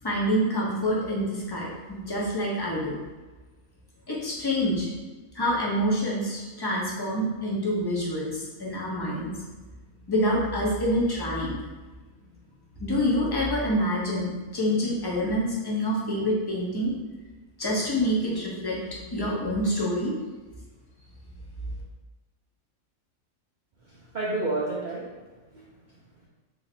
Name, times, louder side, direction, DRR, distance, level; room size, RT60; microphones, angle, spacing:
voice 1, 0.0-3.0 4.1-4.9 5.3-9.3 10.1-11.6 12.8-16.9 17.6-20.1, equal, 25° left, -4 dB, 0.5 m, -27 dB
voice 2, 23.8-25.1 25.5-26.0, right 2 dB, 70° right, -5 dB, 0.4 m, -31 dB
3.1 x 2.6 x 4.1 m, 1.3 s
omnidirectional pair, 1.5 m